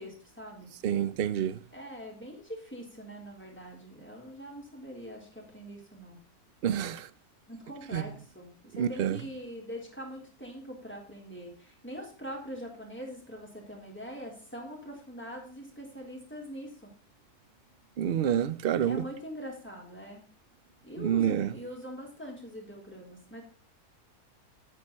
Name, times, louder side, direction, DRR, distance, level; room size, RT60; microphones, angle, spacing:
voice 1, 0.0-0.7 1.7-6.2 7.5-16.9 18.8-20.2 20.8-23.4, equal, 5° left, 3.9 m, -43 dB
voice 2, 0.8-1.6 6.6-7.1 7.9-8.1 8.7-9.2 18.0-19.0 21.0-21.5, right 9 dB, 55° right, 0.6 m, -28 dB
10.0 x 9.1 x 4.2 m
omnidirectional pair, 1.7 m